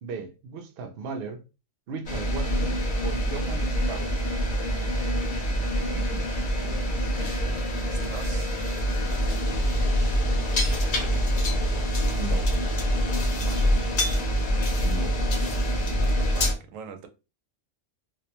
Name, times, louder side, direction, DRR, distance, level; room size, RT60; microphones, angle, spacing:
voice 1, 0.0-1.4 1.9-2.8 3.0-4.2 5.9-6.3 6.6-7.3 12.2-12.5 14.8-15.2, right 4 dB, 60° right, 0.6 m, -37 dB
sound 1, 2.1-16.5, equal, 50° left, 0.7 m, -25 dB
voice 2, 7.2-8.6 10.0-10.8 13.4-13.9 16.0-17.1, right 6 dB, 90° right, 1.0 m, -44 dB
2.5 x 2.1 x 2.8 m
omnidirectional pair, 1.3 m